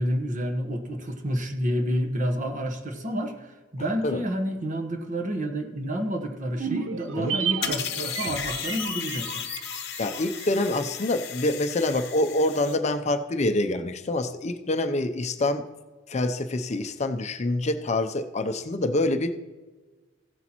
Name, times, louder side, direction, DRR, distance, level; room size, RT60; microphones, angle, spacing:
voice 1, 0.0-9.5, equal, 40° right, 5 dB, 1.1 m, -29 dB
sound 1, 6.5-11.0 11.3-11.4, right 7 dB, 80° right, 0.6 m, -33 dB
sound 2, 7.6-12.8, left 10 dB, 55° left, 0.8 m, -35 dB
voice 2, 10.0-15.6 16.1-19.3, left 2 dB, 35° left, 7 dB, 0.5 m, -26 dB
16.0 x 8.2 x 3.0 m, 1.3 s
head